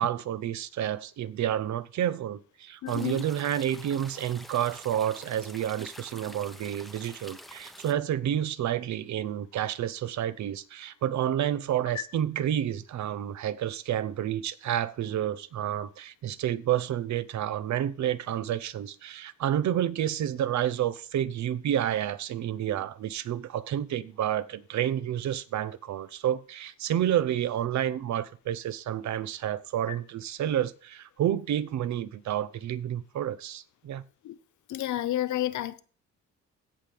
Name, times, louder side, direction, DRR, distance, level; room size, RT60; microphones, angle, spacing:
voice 1, 0.0-34.0, right 11 dB, 70° right, 0.8 m, -30 dB
voice 2, 2.8-3.2 34.2-34.4 34.7-35.8, left 13 dB, 75° left, 0.8 m, -30 dB
sound 1, 2.9-7.9, equal, ahead, 0.9 m, -47 dB
16.0 x 5.9 x 3.5 m
cardioid pair, 90°, 30 cm